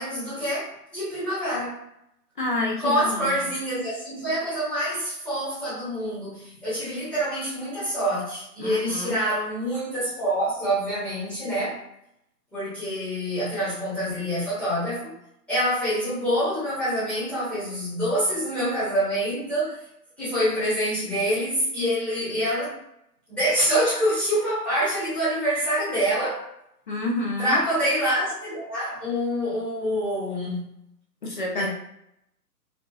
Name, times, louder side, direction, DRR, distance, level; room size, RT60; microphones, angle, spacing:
voice 1, 0.0-1.8 2.8-11.8 12.5-15.1 15.5-19.8 20.2-22.7 23.3-26.4 27.4-30.7 31.5-31.7, equal, ahead, -13 dB, 1.0 m, -26 dB
voice 2, 2.4-3.3 8.6-9.2 26.9-27.6 31.2-31.7, left 2 dB, 30° left, -1 dB, 0.6 m, -28 dB
4.4 x 2.7 x 2.5 m, 0.78 s
figure-of-eight pair, 145°, 49 cm